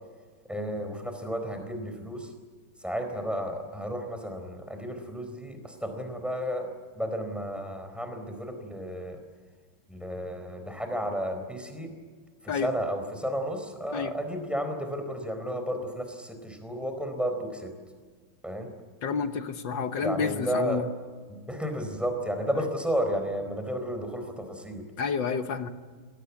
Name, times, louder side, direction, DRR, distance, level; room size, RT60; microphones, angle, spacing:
voice 1, 0.5-2.3 2.8-6.7 7.0-9.2 9.9-11.9 12.4-17.7 18.4-18.7 20.0-20.9 21.3-24.8, equal, ahead, 6 dB, 4.1 m, -32 dB
voice 2, 19.0-20.9 22.5-22.6 25.0-25.7, left 5 dB, 65° left, 9 dB, 1.8 m, -29 dB
23.0 x 17.5 x 8.4 m, 1.5 s
omnidirectional pair, 2.3 m